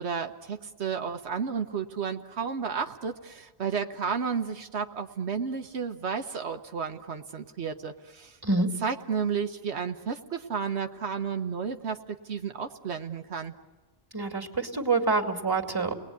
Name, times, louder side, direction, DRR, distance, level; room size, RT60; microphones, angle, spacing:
voice 1, 0.0-8.4 8.8-12.0 12.2-13.5, right 6 dB, 80° right, 6 dB, 1.3 m, -32 dB
voice 2, 14.1-15.9, right 3 dB, 20° right, 3 dB, 2.5 m, -26 dB
30.0 x 20.5 x 9.4 m, 1.3 s
omnidirectional pair, 1.1 m